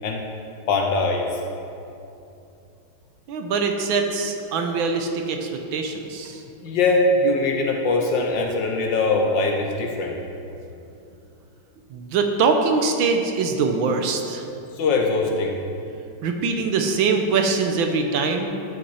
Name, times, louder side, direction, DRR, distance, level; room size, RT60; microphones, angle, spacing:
voice 1, 0.7-1.4 6.6-10.2 14.8-15.6, left 3 dB, 70° left, 1 dB, 1.3 m, -22 dB
voice 2, 3.3-6.4 11.9-14.4 16.2-18.5, right 4 dB, 70° right, 4 dB, 1.4 m, -23 dB
12.5 x 5.7 x 4.3 m, 2.7 s
omnidirectional pair, 2.4 m